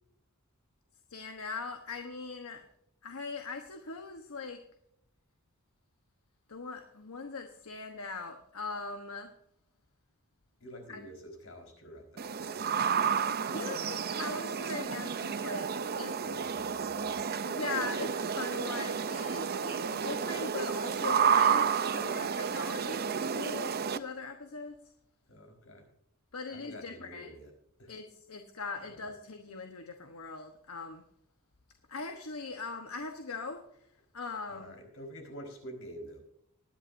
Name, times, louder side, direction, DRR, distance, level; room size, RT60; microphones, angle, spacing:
voice 1, 1.1-2.6 3.0-4.6 6.5-9.3 10.9-11.0 13.5-15.7 15.9-16.2 17.4-24.8 26.3-27.3 27.9-31.0 31.9-33.6 34.1-34.7, left 4 dB, 90° left, 5 dB, 1.1 m, -40 dB
voice 2, 10.6-12.7 16.2-17.2 25.3-25.9 26.5-27.5 27.8-27.9 28.9-29.0 34.5-36.2, equal, 70° left, 3 dB, 4.6 m, -48 dB
sound 1, 12.2-24.0, right 7 dB, 45° right, 0.6 m, -31 dB
20.5 x 10.5 x 2.7 m, 0.75 s
head